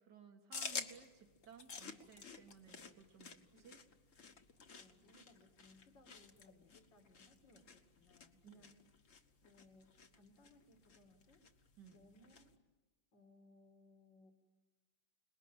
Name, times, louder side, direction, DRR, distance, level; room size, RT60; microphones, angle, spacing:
voice 1, 0.0-3.4 3.6-3.8 8.4-8.7 11.8-12.0, right 7 dB, 65° right, 5 dB, 2.5 m, -60 dB
sound 1, 0.5-12.5, left 5 dB, 45° left, 1.6 m, -52 dB
voice 2, 4.8-8.8 9.4-11.4 11.9-12.6 13.1-14.3, left 2 dB, 75° left, 3 dB, 3.0 m, -66 dB
29.0 x 20.5 x 9.0 m, 1.2 s
omnidirectional pair, 2.0 m